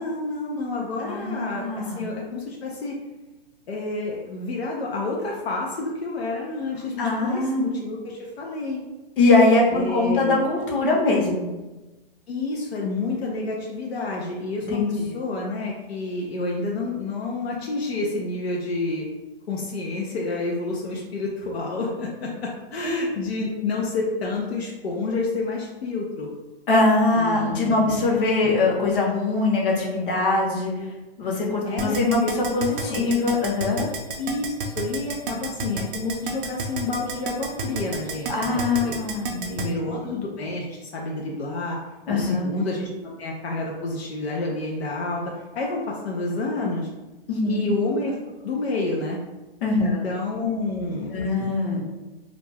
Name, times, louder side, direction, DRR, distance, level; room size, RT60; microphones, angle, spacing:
voice 1, 0.0-3.0 3.7-8.8 9.7-10.5 12.3-19.1 19.5-26.3 27.1-28.1 28.4-28.5 31.6-32.3 32.8-33.1 34.2-39.0 39.5-41.8 42.1-46.9 47.4-48.2 48.4-49.2 49.8-51.1, left 3 dB, 90° left, -2 dB, 0.6 m, -29 dB
voice 2, 1.0-2.0 7.0-7.7 9.2-11.5 14.7-15.1 22.8-23.0 26.7-30.7 31.2-33.9 38.3-40.0 42.1-42.5 47.3-47.6 49.6-50.0 51.1-51.8, left 3 dB, 60° left, -2 dB, 1.0 m, -22 dB
Keyboard (musical), 31.8-39.7, right 5 dB, 60° right, 0.5 m, -30 dB
2.4 x 2.2 x 3.2 m, 1.1 s
hypercardioid pair, 145°, 30 cm